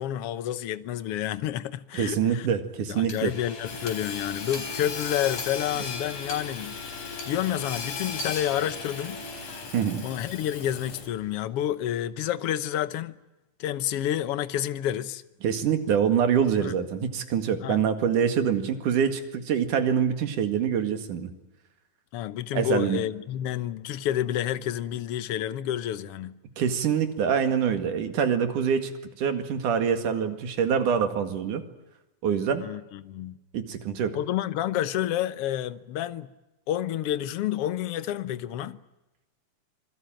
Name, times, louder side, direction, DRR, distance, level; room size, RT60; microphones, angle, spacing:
voice 1, 0.0-2.5 2.9-6.8 7.3-9.2 10.0-13.2 13.6-15.2 16.6-16.8 17.6-17.9 22.1-26.4 32.6-33.4 34.1-36.3 36.7-38.8, left 11 dB, 60° left, 1.7 m, -29 dB
voice 2, 1.9-3.3 9.7-10.1 15.4-21.3 22.5-23.0 26.6-28.9 29.2-31.6 32.2-32.7 33.5-34.2, right 7 dB, 90° right, 3.6 m, -25 dB
Hammer / Sawing, 3.1-11.3, left 4 dB, 90° left, 5.8 m, -36 dB
27.0 x 21.0 x 9.1 m
omnidirectional pair, 3.5 m